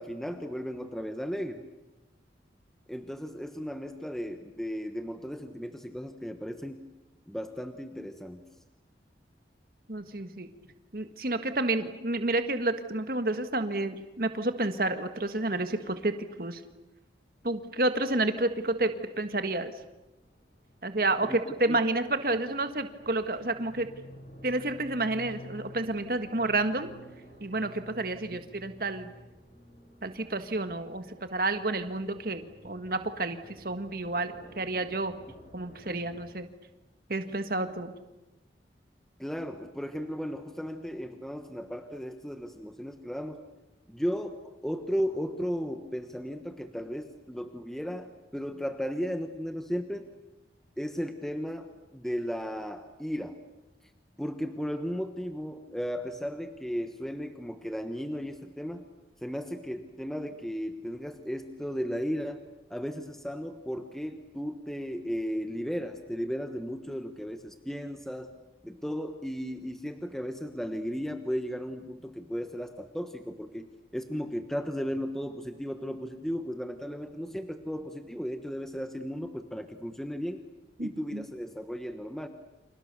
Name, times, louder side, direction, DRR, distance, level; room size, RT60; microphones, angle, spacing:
voice 1, 0.0-1.6 2.9-6.8 7.3-8.4 21.2-21.8 28.3-28.4 39.2-43.4 43.9-50.1 50.8-53.4 54.2-58.9 59.2-62.4 62.7-68.3 68.6-73.7 73.9-80.4 80.8-82.3, equal, ahead, 7 dB, 1.3 m, -35 dB
voice 2, 9.9-10.5 10.9-16.1 16.4-16.6 17.4-19.7 20.8-23.9 24.4-26.9 27.4-29.1 30.0-33.4 33.6-35.1 35.5-36.5 37.1-37.9 80.8-81.2, right 2 dB, 55° right, 8 dB, 1.7 m, -30 dB
sound 1, 17.3-36.3, equal, 50° left, 7.3 m, -52 dB
30.0 x 27.0 x 6.9 m, 1.0 s
head